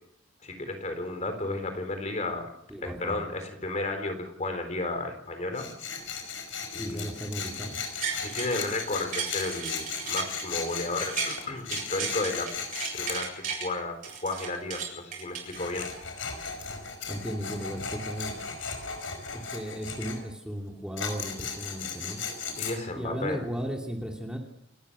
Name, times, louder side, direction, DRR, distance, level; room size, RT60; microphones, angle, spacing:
voice 1, 0.4-2.5 2.8-5.7 6.7-7.0 8.3-12.5 12.9-15.9 22.6-23.4, left 2 dB, 35° left, 6 dB, 4.0 m, -33 dB
voice 2, 2.7-3.2 6.8-7.8 17.1-18.3 19.3-22.2 22.9-24.4, equal, 5° right, 0 dB, 2.8 m, -35 dB
Tools, 5.5-13.2 15.4-20.2 21.0-22.7, left 6 dB, 80° left, 5.3 m, -36 dB
sound 1, 7.8-8.6 9.0-11.4 11.7-13.7 14.0-16.0 16.5-16.6, right 6 dB, 45° right, 7.9 m, -35 dB
29.5 x 14.5 x 6.3 m, 0.77 s
head